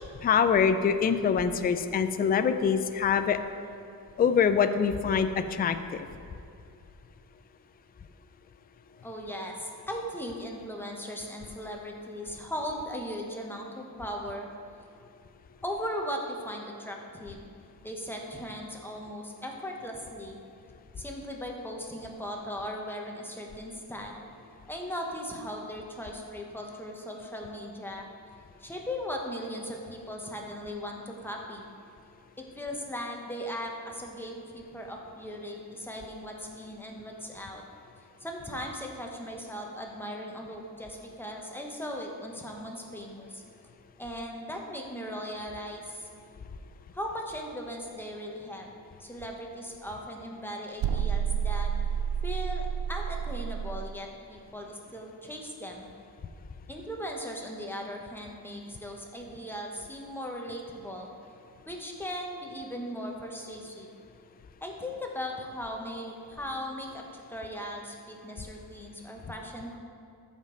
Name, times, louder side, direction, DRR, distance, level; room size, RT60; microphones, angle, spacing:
voice 1, 0.2-3.4 4.2-6.1, left 6 dB, 25° left, 9 dB, 0.4 m, -24 dB
voice 2, 9.0-14.5 15.6-17.5 17.8-20.4 21.0-24.3 24.7-28.1 28.6-31.7 32.4-37.6 38.2-43.4 44.0-46.1 46.9-48.7 49.0-51.7 52.2-55.9 56.7-61.1 61.6-63.9 64.6-69.8, equal, 5° left, 0 dB, 1.1 m, -38 dB
sound 1, 50.8-53.9, right 8 dB, 60° right, 0.5 m, -30 dB
14.0 x 5.3 x 3.9 m, 2.5 s
cardioid pair, 130°, 39 cm